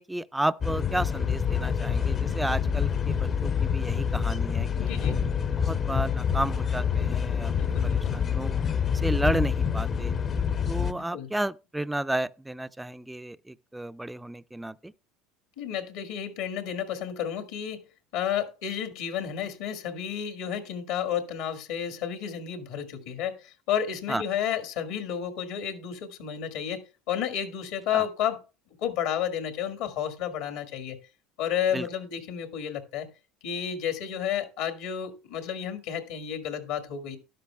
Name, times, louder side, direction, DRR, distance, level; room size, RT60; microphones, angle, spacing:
voice 1, 0.0-5.2 5.6-8.6 8.9-10.1 10.7-14.9 24.1-24.2 27.9-28.1 31.7-31.9, right 1 dB, 5° right, 0.4 m, -32 dB
sound 1, 0.6-10.9, left 7 dB, 40° left, 0.7 m, -27 dB
voice 2, 4.8-5.2 7.4-8.2 10.9-11.3 15.6-17.9 18.1-28.4 28.8-31.0 31.4-33.1 33.4-37.2, left 9 dB, 75° left, 1.8 m, -31 dB
13.0 x 11.0 x 2.3 m
supercardioid pair, 90°, 0 cm